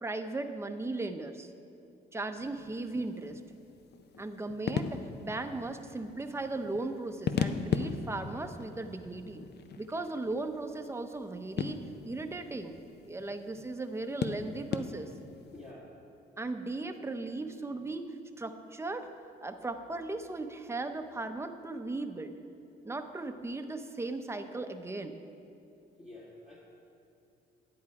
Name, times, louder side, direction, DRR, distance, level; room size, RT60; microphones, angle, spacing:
voice 1, 0.0-1.5 2.1-3.4 4.2-9.4 9.8-11.8 12.0-12.7 13.0-15.1 16.4-18.0 18.4-19.1 19.4-22.3 22.8-25.2, right 2 dB, 15° right, 7 dB, 0.7 m, -37 dB
sound 1, 2.4-15.7, left 7 dB, 55° left, 0.6 m, -39 dB
voice 2, 15.5-15.9 26.0-26.6, left 2 dB, 35° left, -6 dB, 1.8 m, -49 dB
10.5 x 8.6 x 4.8 m, 2.7 s
cardioid pair, 90°, 20 cm